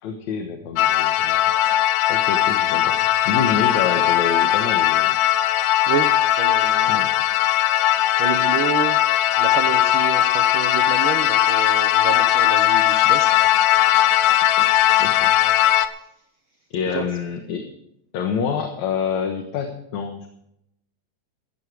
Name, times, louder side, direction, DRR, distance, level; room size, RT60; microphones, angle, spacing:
voice 1, 0.0-1.4 2.1-5.2 6.9-7.1 14.5-14.7 15.0-15.3 16.7-17.7 18.1-20.3, left 6 dB, 70° left, 5 dB, 2.5 m, -27 dB
sound 1, 0.8-15.9, left 12 dB, 90° left, 2.4 m, -18 dB
voice 2, 5.9-7.0 8.2-9.0 9.4-13.3 15.2-15.3 15.9-16.1 16.9-17.0, right 7 dB, 65° right, 7 dB, 1.3 m, -29 dB
15.0 x 12.5 x 4.8 m, 0.77 s
omnidirectional pair, 3.6 m